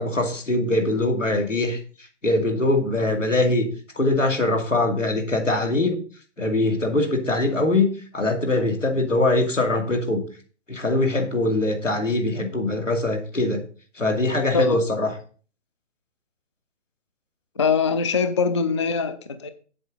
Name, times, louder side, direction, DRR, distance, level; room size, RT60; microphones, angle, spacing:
voice 1, 0.0-1.8 2.2-3.7 3.9-6.0 6.4-7.9 8.1-10.2 10.7-13.6 14.0-15.1, left 2 dB, 90° left, 2 dB, 2.5 m, -22 dB
voice 2, 17.6-19.5, left 5 dB, 25° left, 11 dB, 0.4 m, -23 dB
8.0 x 7.7 x 3.8 m, 0.40 s
figure-of-eight pair, 135°, 37 cm